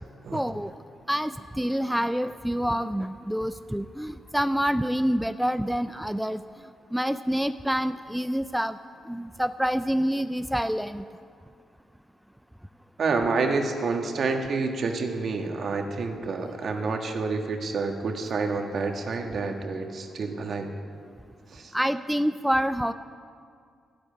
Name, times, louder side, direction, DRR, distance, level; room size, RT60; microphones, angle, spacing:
voice 1, 0.3-0.7 1.1-6.4 6.9-8.8 9.1-11.0 16.4-16.7 21.7-22.9, equal, ahead, 11 dB, 0.4 m, -27 dB
voice 2, 13.0-20.7 21.5-21.7, right 4 dB, 60° right, 4 dB, 1.5 m, -28 dB
11.0 x 8.6 x 9.4 m, 2.2 s
cardioid pair, 65°, 0 cm